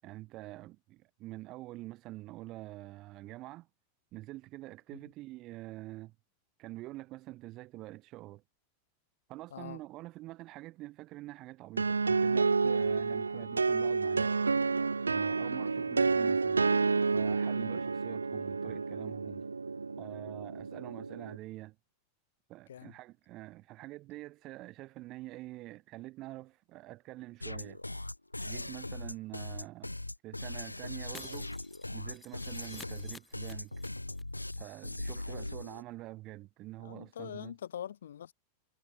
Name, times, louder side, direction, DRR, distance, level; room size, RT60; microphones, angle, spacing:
voice 1, 0.0-3.7 4.1-6.1 6.6-8.4 9.3-14.4 15.1-16.6 17.1-19.5 20.0-21.8 22.5-27.8 28.4-29.9 30.2-31.5 31.9-33.7 34.6-37.5, right 18 dB, 40° right, 8.0 m, -46 dB
sound 1, 11.8-21.4, right 4 dB, 75° right, 0.8 m, -30 dB
sound 2, 27.4-35.8, left 1 dB, 85° left, 2.5 m, -40 dB
Shatter, 31.1-34.2 34.5-34.6 34.9-35.0, left 4 dB, 15° left, 2.3 m, -52 dB
voice 2, 36.8-38.3, left 10 dB, 65° left, 7.7 m, -44 dB
figure-of-eight pair, 90°, 0 cm